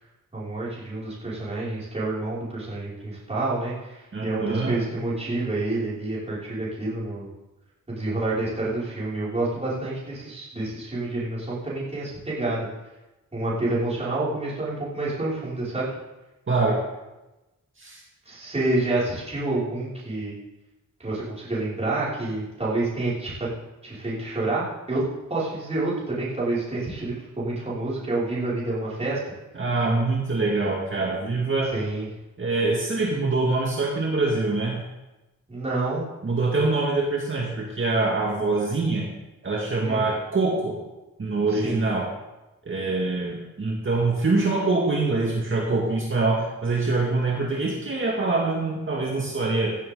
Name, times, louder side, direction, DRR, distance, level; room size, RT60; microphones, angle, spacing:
voice 1, 0.3-7.3 7.9-12.7 13.3-16.0 18.3-20.3 21.0-23.5 23.8-25.0 25.3-29.2 31.7-32.1 35.5-36.0 39.8-40.1 41.5-41.8, right 2 dB, 20° right, -9 dB, 5.9 m, -28 dB
voice 2, 4.1-4.7 16.5-16.8 17.8-18.0 29.5-31.7 32.4-34.8 36.2-39.1 39.4-40.8 41.2-42.1 42.7-49.8, right 3 dB, 40° right, -2 dB, 2.1 m, -24 dB
16.0 x 14.0 x 3.9 m, 1.0 s
wide cardioid pair, 145°, 33 cm